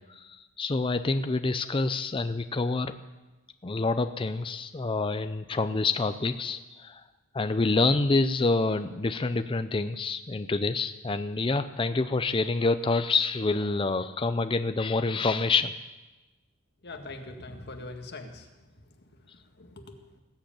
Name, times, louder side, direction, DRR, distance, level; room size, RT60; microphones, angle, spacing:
voice 1, 0.1-3.0 3.6-7.0 7.3-15.7, left 3 dB, 25° left, 9 dB, 0.5 m, -27 dB
voice 2, 16.8-20.2, left 2 dB, 50° left, 4 dB, 1.8 m, -44 dB
19.5 x 7.8 x 8.7 m, 1.1 s
head